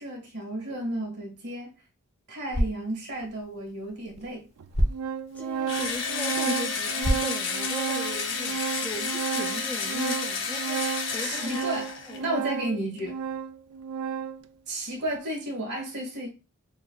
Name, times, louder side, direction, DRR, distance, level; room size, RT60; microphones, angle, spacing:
voice 1, 0.0-1.7 2.3-4.5 11.2-11.9 12.2-13.2 14.7-16.3, right 1 dB, 50° right, 1.8 m, -33 dB
sound 1, 2.3-8.4, equal, 30° left, 0.9 m, -33 dB
Organ, 3.2-3.3 4.2-4.3 4.6-14.5, right 7 dB, 80° right, 0.4 m, -33 dB
voice 2, 5.3-11.6 12.1-12.2, left 3 dB, 5° left, 0.3 m, -38 dB
Engine / Drill, 5.7-12.2, left 5 dB, 55° left, 0.9 m, -31 dB
6.6 x 2.9 x 2.3 m
head